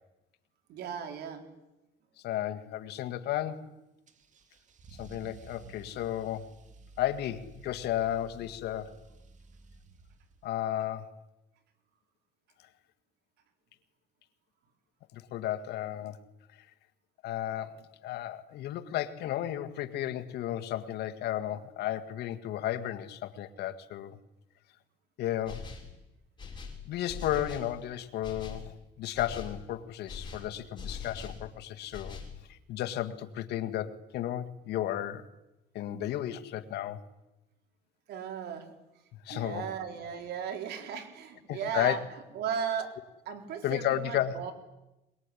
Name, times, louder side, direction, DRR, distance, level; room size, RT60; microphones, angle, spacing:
voice 1, 0.7-1.5 38.1-38.7 39.3-42.0 42.3-43.0 43.3-44.5, right 7 dB, 75° right, 5 dB, 4.4 m, -36 dB
voice 2, 2.2-3.7 4.9-6.5 7.0-8.9 10.4-11.1 15.1-16.2 17.2-24.2 25.2-25.7 26.9-32.2 32.5-35.3 35.7-37.0 39.3-39.6 41.5-42.0 43.6-44.5, left 12 dB, 75° left, 8 dB, 1.8 m, -33 dB
Car / Engine starting / Accelerating revving vroom, 4.1-10.6, right 4 dB, 45° right, 2.3 m, -53 dB
sound 1, 25.5-26.0 26.4-27.8 28.2-28.7 29.1-29.6 30.1-31.4 31.9-32.4, left 5 dB, 25° left, 5.7 m, -42 dB
22.0 x 21.5 x 9.9 m, 0.96 s
cardioid pair, 110°, 17 cm